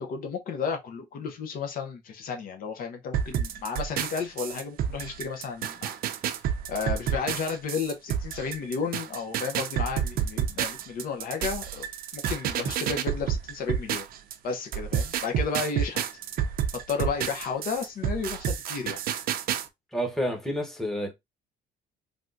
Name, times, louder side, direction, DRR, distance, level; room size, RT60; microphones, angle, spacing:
voice 1, 0.0-6.0 6.7-11.9 12.1-14.1 14.4-16.0 16.9-19.0, left 5 dB, 55° left, 0.7 m, -32 dB
sound 1, 3.1-14.3 14.7-19.7, right 9 dB, 60° right, 0.5 m, -30 dB
voice 2, 19.9-21.1, equal, ahead, 0.9 m, -29 dB
3.4 x 2.3 x 2.5 m
cardioid pair, 110°, 17 cm